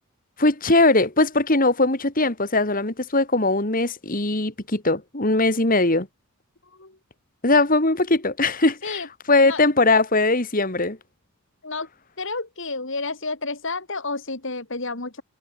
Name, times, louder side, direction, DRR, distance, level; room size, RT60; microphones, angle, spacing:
voice 1, 0.4-6.1 7.4-9.0 9.3-11.0, left 2 dB, 40° left, 2.6 m, -20 dB
voice 2, 6.6-7.0 8.8-9.1 9.4-9.6 11.6-11.9 12.2-15.2, left 3 dB, 60° left, 3.0 m, -30 dB
head